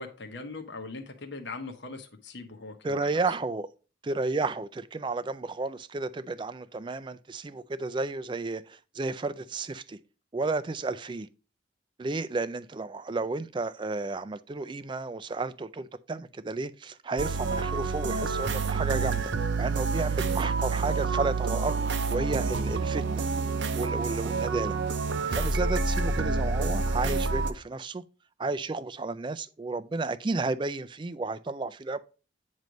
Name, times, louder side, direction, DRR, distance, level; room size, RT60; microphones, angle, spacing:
voice 1, 0.0-3.2 24.4-24.9, left 3 dB, 65° left, 1.0 m, -41 dB
voice 2, 2.8-3.7 4.0-10.0 10.3-11.3 12.0-23.3 23.8-24.8 25.3-28.0 28.4-32.0, right 3 dB, 25° right, 0.3 m, -32 dB
sound 1, 17.2-27.5, right 4 dB, 65° right, 0.6 m, -28 dB
9.1 x 3.1 x 5.1 m
head